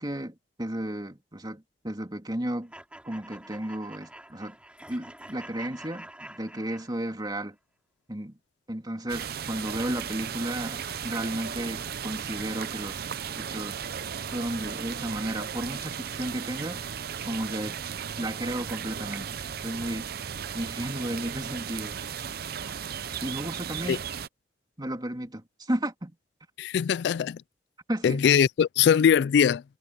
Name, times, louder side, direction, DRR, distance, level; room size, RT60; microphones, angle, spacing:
voice 1, 0.0-2.7 3.0-4.6 4.9-7.6 8.1-8.4 8.7-13.0 13.3-13.8 14.3-16.9 17.2-17.8 18.2-20.1 20.5-22.0 23.2-24.0 24.8-26.1 27.9-28.3, right 1 dB, 25° right, 3.1 m, -33 dB
sound 1, 2.7-7.3, right 1 dB, 5° right, 3.6 m, -47 dB
sound 2, 9.1-24.3, right 7 dB, 60° right, 0.6 m, -36 dB
voice 2, 26.6-27.4 28.0-29.6, left 8 dB, 70° left, 0.3 m, -21 dB
head